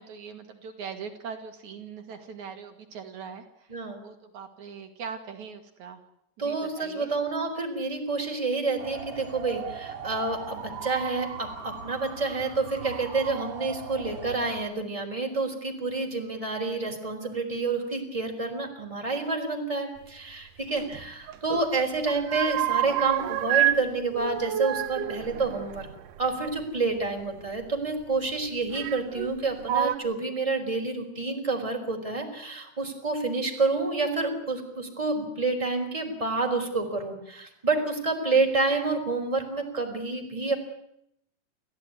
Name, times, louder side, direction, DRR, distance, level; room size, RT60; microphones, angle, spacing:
voice 1, 0.0-6.0 6.4-7.1, right 6 dB, 70° right, 5 dB, 3.1 m, -41 dB
voice 2, 6.4-25.9 26.2-40.5, right 3 dB, 10° right, 2 dB, 4.2 m, -29 dB
sound 1, 8.8-14.6, right 6 dB, 45° right, 3.4 m, -39 dB
sound 2, 20.8-21.7 22.0-23.8 24.1-26.6 27.6-27.7 28.7-29.3 29.6-30.0, right 12 dB, 90° right, 2.6 m, -28 dB
29.0 x 15.0 x 9.7 m, 0.78 s
omnidirectional pair, 3.6 m